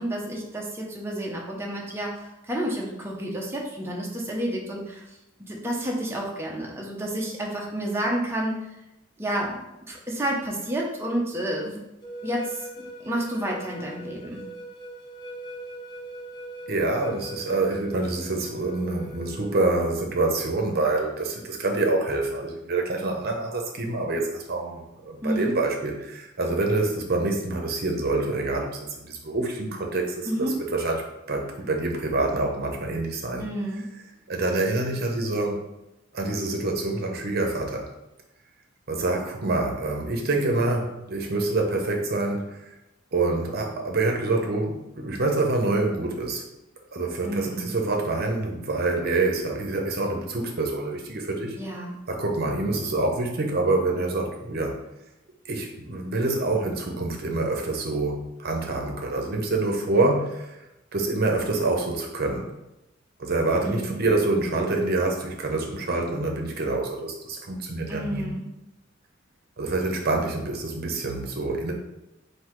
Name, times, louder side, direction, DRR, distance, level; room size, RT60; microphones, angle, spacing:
voice 1, 0.0-5.0 5.5-8.6 9.2-9.5 9.9-11.8 12.2-14.4 25.2-25.5 30.3-30.5 33.4-33.8 47.2-47.7 51.6-51.9 63.6-64.0 67.9-68.5, right 1 dB, 15° right, -2 dB, 0.7 m, -30 dB
sound 1, 12.0-19.8, right 1 dB, 20° left, 0.7 m, -40 dB
voice 2, 16.7-33.5 34.3-35.6 36.1-37.9 38.9-42.6 43.1-46.4 46.9-51.6 52.1-54.8 55.4-60.6 60.9-62.5 63.2-68.3 69.6-71.7, right 2 dB, 50° right, 2 dB, 0.8 m, -26 dB
3.9 x 2.7 x 4.6 m, 0.92 s
head